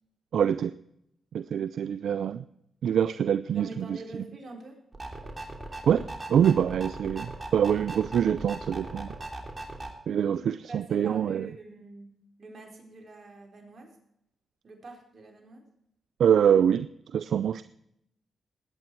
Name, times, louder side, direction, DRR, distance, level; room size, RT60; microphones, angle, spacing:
voice 1, 0.3-0.7 1.3-2.4 2.8-4.0 5.9-9.1 10.1-11.5 16.2-16.9 17.1-17.6, right 8 dB, 75° right, 15 dB, 0.4 m, -25 dB
voice 2, 3.5-4.8 10.3-10.4 10.7-12.1 12.4-14.0 14.6-15.7, right 2 dB, 55° right, 1 dB, 4.4 m, -45 dB
sound 1, 4.9-9.9, right 2 dB, 30° right, 3.2 m, -39 dB
20.0 x 8.8 x 4.6 m, 0.77 s
supercardioid pair, 55°, 0 cm